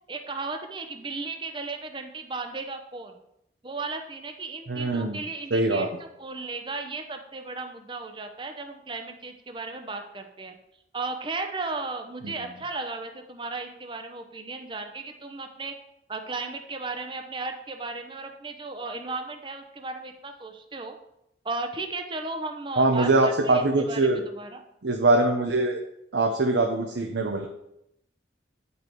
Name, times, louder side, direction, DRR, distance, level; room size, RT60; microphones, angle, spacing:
voice 1, 0.1-3.2 3.6-10.5 10.9-15.7 16.1-21.0 21.4-24.6, right 3 dB, 25° right, 5 dB, 0.7 m, -35 dB
voice 2, 4.7-5.2 5.5-5.9 12.2-12.3 22.8-24.2 24.8-25.8 26.1-27.5, right 2 dB, 80° right, 3 dB, 0.8 m, -23 dB
10.0 x 5.5 x 4.6 m, 0.81 s
head